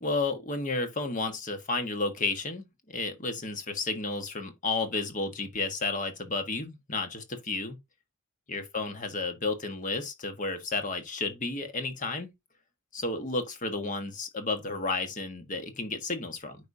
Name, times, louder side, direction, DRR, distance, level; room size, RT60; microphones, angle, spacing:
voice 1, 0.0-2.7 2.9-7.8 8.5-12.3 12.9-16.6, left 3 dB, 35° left, 1.4 m, -32 dB
9.0 x 5.0 x 2.7 m
head